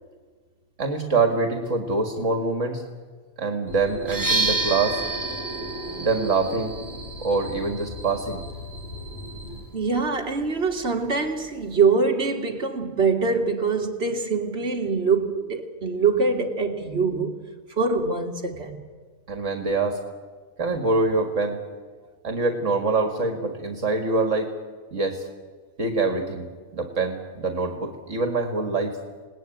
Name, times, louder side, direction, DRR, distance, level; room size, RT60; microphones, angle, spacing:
voice 1, 0.8-2.8 3.4-5.0 6.0-6.8 7.2-8.4 19.3-20.0 20.6-21.6 22.2-24.5 24.9-25.3 25.8-26.5 26.7-29.0, right 3 dB, 65° right, 2.3 m, -25 dB
sound 1, 3.7-9.6, left 1 dB, 35° left, 8.0 m, -37 dB
sound 2, 4.0-11.8, right 3 dB, 15° right, 1.1 m, -32 dB
voice 2, 9.7-17.4 17.8-18.8, right 4 dB, 50° right, 2.5 m, -24 dB
28.0 x 19.5 x 9.2 m
omnidirectional pair, 1.4 m